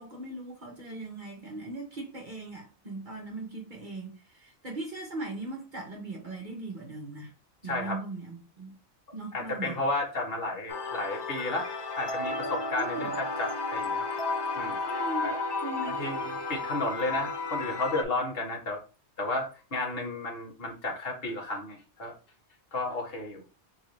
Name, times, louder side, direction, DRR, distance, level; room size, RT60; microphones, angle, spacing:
voice 1, 0.0-7.3 7.6-8.7 9.1-9.8 12.8-13.1 14.9-15.3 15.6-16.0, right 2 dB, 45° right, 0.9 m, -39 dB
voice 2, 7.6-8.0 9.3-11.7 11.9-14.1 14.5-14.8 15.2-15.4 16.0-18.8 19.2-22.1 22.7-23.4, left 2 dB, 55° left, 1.6 m, -32 dB
sound 1, 10.7-18.0, left 3 dB, 40° left, 0.3 m, -33 dB
4.7 x 2.6 x 3.1 m
omnidirectional pair, 1.2 m